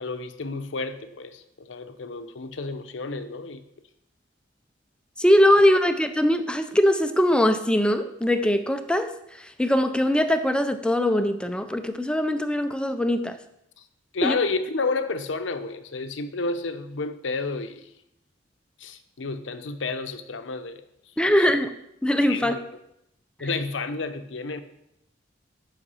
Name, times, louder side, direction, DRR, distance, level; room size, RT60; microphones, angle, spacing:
voice 1, 0.0-3.6 14.1-17.9 18.8-20.8 21.5-21.6 22.3-22.6 23.4-24.6, left 3 dB, 85° left, 10 dB, 0.7 m, -31 dB
voice 2, 5.2-9.1 9.4-13.4 14.2-14.4 21.2-21.7 22.0-22.6 23.4-23.5, left 1 dB, 5° left, 9 dB, 0.5 m, -21 dB
8.6 x 5.8 x 5.5 m, 0.81 s
head